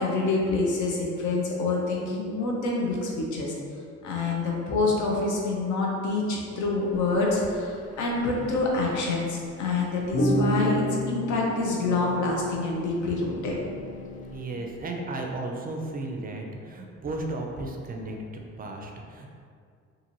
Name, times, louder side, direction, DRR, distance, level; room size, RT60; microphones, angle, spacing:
voice 1, 0.0-3.5 4.0-13.6, left 3 dB, 75° left, -2 dB, 0.7 m, -27 dB
sound 1, 7.0-7.1 7.4-7.6 8.4-8.8 10.1-14.4, equal, 25° left, 0.4 m, -30 dB
voice 2, 14.3-19.4, right 2 dB, 30° right, 1 dB, 0.4 m, -34 dB
2.8 x 2.6 x 2.6 m, 2.2 s
cardioid pair, 90°, 30 cm